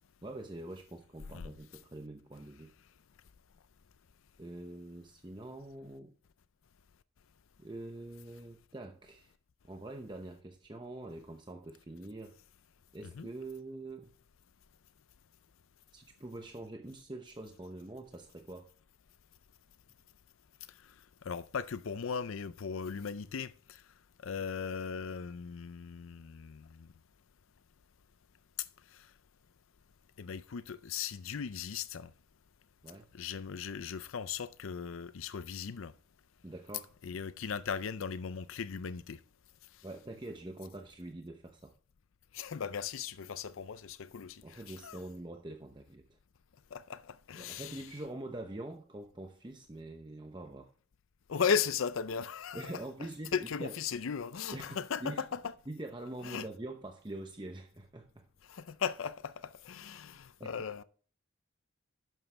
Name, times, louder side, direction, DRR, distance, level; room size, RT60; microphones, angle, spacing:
voice 1, 0.2-2.7 4.4-6.1 7.6-9.3 9.6-12.4 12.9-14.1 15.9-18.6 32.8-33.1 36.4-36.9 39.8-41.7 44.4-46.2 47.3-50.7 52.5-53.8 54.5-55.3 55.7-58.3 60.4-60.6, right 2 dB, 20° right, 0.8 m, -45 dB
voice 2, 21.2-23.8 24.2-26.9 28.9-29.1 30.2-32.1 33.1-35.9 37.0-39.2 42.3-45.0 46.7-47.8 51.3-52.8 53.3-55.4 56.2-56.5 58.5-60.8, left 6 dB, 85° left, 0.5 m, -37 dB
12.0 x 9.1 x 3.4 m
head